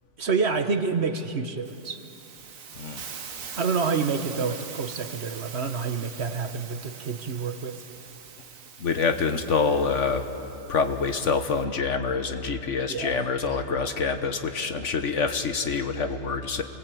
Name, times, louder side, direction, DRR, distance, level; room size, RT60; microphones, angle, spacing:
voice 1, 0.2-2.0 3.6-7.8 12.9-13.3, right 5 dB, 55° right, 8 dB, 1.3 m, -28 dB
Hiss, 1.6-11.6, right 6 dB, 80° right, 1.6 m, -43 dB
voice 2, 8.8-10.2 10.7-16.6, left 5 dB, 65° left, 7 dB, 1.5 m, -26 dB
28.0 x 19.5 x 8.5 m, 2.9 s
omnidirectional pair, 1.4 m